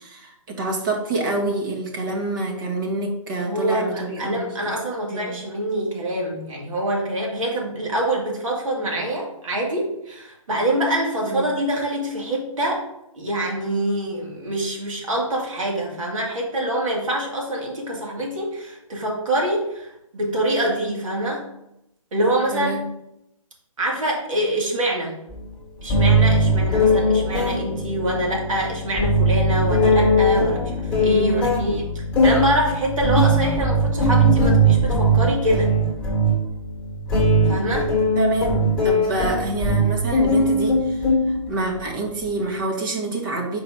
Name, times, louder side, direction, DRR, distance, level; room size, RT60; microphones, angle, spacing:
voice 1, 0.0-4.8 5.1-5.4 11.2-11.4 22.5-22.8 31.3-31.5 38.1-43.6, right 2 dB, 35° right, 0 dB, 1.5 m, -27 dB
voice 2, 3.4-12.9 13.1-21.5 22.1-22.9 23.8-25.1 25.8-30.7 31.0-35.7 37.5-38.0, right 1 dB, 65° right, -2 dB, 2.4 m, -25 dB
sound 1, 25.3-25.4 25.9-41.8, right 1 dB, 5° left, 1.7 m, -20 dB
4.9 x 3.9 x 5.0 m, 0.83 s
hypercardioid pair, 150°, 18 cm